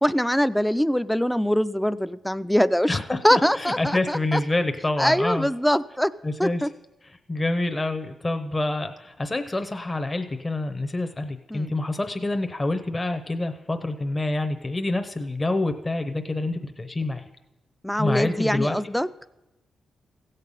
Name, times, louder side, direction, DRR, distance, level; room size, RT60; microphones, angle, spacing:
voice 1, 0.0-4.4 5.0-6.1 6.4-6.7 11.5-11.7 17.8-19.1, equal, 5° left, 14 dB, 0.3 m, -23 dB
voice 2, 2.9-5.5 6.2-6.6 7.3-17.3 17.9-18.8, left 2 dB, 25° left, 7 dB, 0.8 m, -27 dB
15.5 x 6.7 x 5.5 m, 0.99 s
cardioid pair, 80°, 0 cm